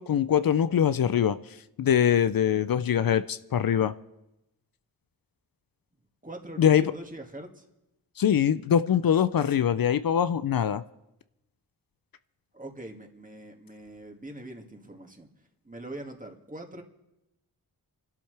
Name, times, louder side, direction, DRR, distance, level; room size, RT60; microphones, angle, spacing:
voice 1, 0.0-1.4 1.8-3.9 6.6-6.8 8.2-10.8, left 9 dB, 65° left, 13 dB, 0.6 m, -23 dB
voice 2, 6.2-7.7 12.5-15.3 15.6-16.8, right 1 dB, 20° right, 3 dB, 2.2 m, -42 dB
28.0 x 12.0 x 3.4 m, 0.92 s
cardioid pair, 60°, 37 cm